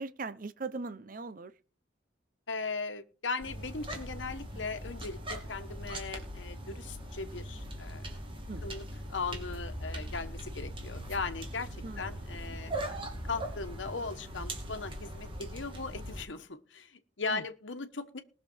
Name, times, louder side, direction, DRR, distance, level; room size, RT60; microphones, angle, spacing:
voice 1, 0.0-1.5 8.5-8.7 11.8-12.1 17.3-17.4, right 3 dB, 45° right, 0.8 m, -39 dB
voice 2, 2.5-8.0 8.6-8.8 9.1-11.7 12.0-12.7 13.2-18.2, left 4 dB, 80° left, 1.2 m, -38 dB
sound 1, 3.4-16.2, right 1 dB, 30° right, 2.7 m, -40 dB
20.0 x 6.7 x 4.5 m
head